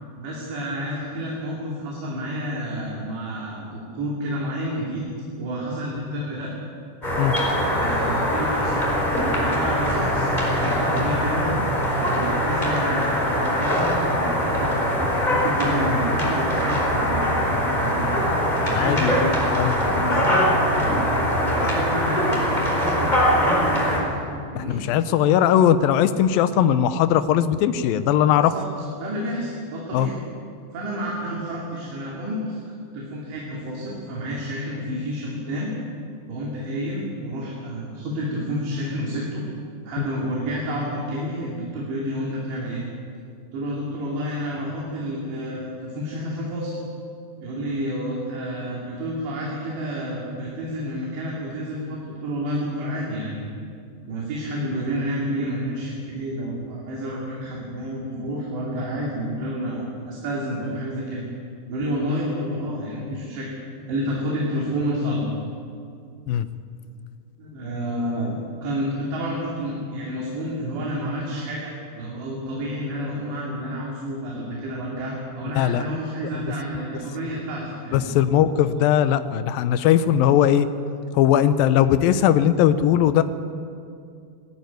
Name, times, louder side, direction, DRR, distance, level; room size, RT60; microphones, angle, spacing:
voice 1, 0.2-5.0 5.4-6.5 7.6-8.8 9.3-11.6 12.0-18.4 18.8-19.3 19.8-20.9 21.4-24.1 24.5-24.8 28.4-28.7 29.0-30.2 30.7-35.7 36.3-39.5 39.8-42.8 43.5-46.7 47.4-53.6 54.0-61.2 61.7-63.5 63.9-65.3 67.4-78.1, equal, 85° right, -4 dB, 5.1 m, -29 dB
sound 1, 7.0-24.0, equal, 10° left, 4.3 m, -22 dB
voice 2, 18.7-19.2 19.5-19.7 21.6-21.7 24.5-28.5 29.9-30.1 40.0-40.1 66.3-66.5 75.6-75.8 77.9-80.7 81.1-83.2, left 10 dB, 80° left, 11 dB, 2.2 m, -19 dB
19.5 x 15.0 x 9.2 m, 2.3 s
omnidirectional pair, 4.9 m